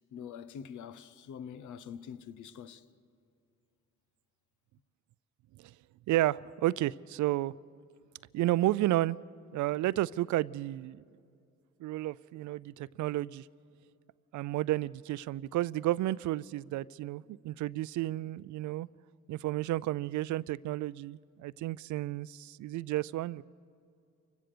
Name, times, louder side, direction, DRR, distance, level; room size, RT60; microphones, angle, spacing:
voice 1, 0.1-2.8, left 7 dB, 75° left, 0.9 m, -45 dB
voice 2, 6.1-7.5 8.3-9.2 9.5-11.0 11.8-13.5 14.3-18.9 19.3-23.4, right 15 dB, 75° right, 0.5 m, -32 dB
29.5 x 16.5 x 6.7 m
cardioid pair, 90°, 30 cm